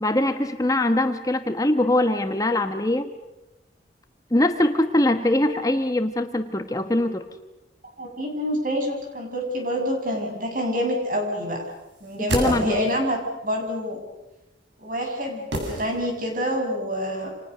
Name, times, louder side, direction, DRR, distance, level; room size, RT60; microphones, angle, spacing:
voice 1, 0.0-3.1 4.3-7.2 12.3-12.8, left 1 dB, 20° left, 7 dB, 1.2 m, -22 dB
voice 2, 8.0-11.6 12.0-14.0 14.8-17.3, equal, 45° right, 3 dB, 7.6 m, -27 dB
sound 1, 11.9-13.1 15.5-16.4 16.7-16.8, equal, 80° right, 6.9 m, -30 dB
29.5 x 27.5 x 6.7 m, 1.0 s
head